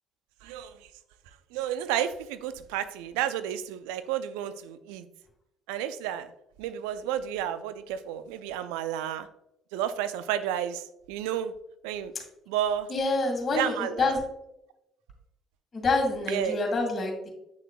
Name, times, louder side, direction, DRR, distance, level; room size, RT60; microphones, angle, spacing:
voice 1, 0.4-0.7 1.5-5.1 5.7-6.3 6.6-9.3 9.7-11.5 11.8-12.1 12.5-12.9 13.5-14.2 16.3-16.6, right 10 dB, 75° right, 12 dB, 0.5 m, -31 dB
voice 2, 12.9-14.2 15.7-17.3, left 3 dB, 40° left, 2 dB, 2.3 m, -27 dB
8.5 x 6.2 x 2.3 m, 0.85 s
hypercardioid pair, 55°, 0 cm